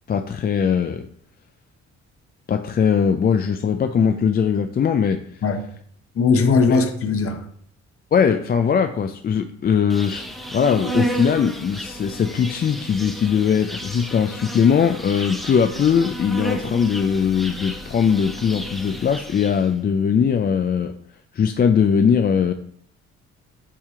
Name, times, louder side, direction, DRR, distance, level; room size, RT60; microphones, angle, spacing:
voice 1, 0.1-1.1 2.5-5.2 6.7-6.8 8.1-10.3 10.5-20.9 21.3-22.5, left 7 dB, 30° left, 7 dB, 0.4 m, -20 dB
voice 2, 6.1-7.4, left 4 dB, 50° left, 6 dB, 0.9 m, -19 dB
Insect, 9.9-19.7, right 1 dB, ahead, 0.9 m, -32 dB
7.4 x 2.8 x 5.0 m, 0.63 s
cardioid pair, 90°, 30 cm